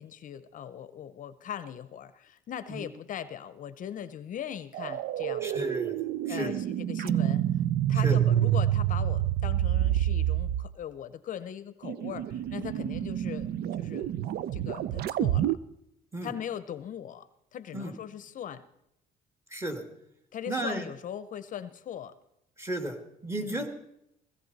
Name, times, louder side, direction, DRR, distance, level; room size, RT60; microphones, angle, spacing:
voice 1, 0.0-5.6 6.3-7.4 7.9-13.5 13.8-14.1 14.5-15.6 16.2-18.7 20.3-22.1 23.3-23.7, left 9 dB, 50° left, 14 dB, 0.7 m, -40 dB
sound 1, 4.7-10.7 11.8-15.6, right 11 dB, 65° right, 0.5 m, -28 dB
voice 2, 5.4-6.0 6.3-6.6 8.0-8.2 16.1-16.3 17.7-18.0 19.5-19.8 20.5-20.9 22.6-23.7, right 1 dB, 15° right, 6 dB, 2.0 m, -34 dB
17.0 x 16.0 x 4.1 m, 0.81 s
cardioid pair, 110°, 17 cm